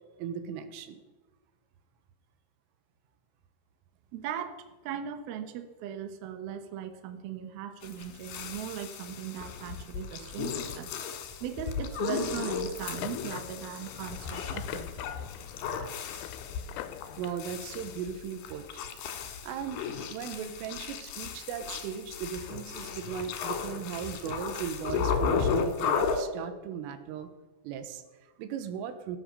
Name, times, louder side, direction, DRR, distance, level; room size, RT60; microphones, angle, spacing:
voice 1, 0.2-1.0 17.2-18.8 19.4-27.3 27.6-29.2, right 8 dB, 90° right, 9 dB, 3.8 m, -37 dB
voice 2, 4.1-10.9 11.4-14.9, right 9 dB, 70° right, 8 dB, 2.4 m, -38 dB
sound 1, 7.8-26.2, left 6 dB, 65° left, 3.1 m, -34 dB
sound 2, 12.9-18.4, left 12 dB, 80° left, 3.1 m, -44 dB
18.0 x 8.7 x 6.9 m, 1.2 s
omnidirectional pair, 5.8 m